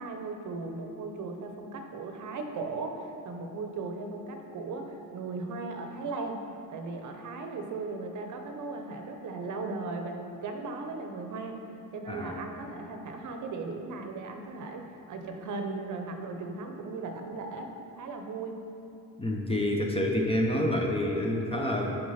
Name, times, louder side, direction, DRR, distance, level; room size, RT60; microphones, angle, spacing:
voice 1, 0.0-6.4 6.7-11.6 11.9-17.7 18.0-18.7, right 3 dB, 55° right, 4 dB, 0.7 m, -37 dB
voice 2, 12.1-12.5 19.2-21.9, left 1 dB, 15° left, 0 dB, 0.5 m, -28 dB
6.3 x 4.6 x 5.6 m, 2.7 s
cardioid pair, 150°, 37 cm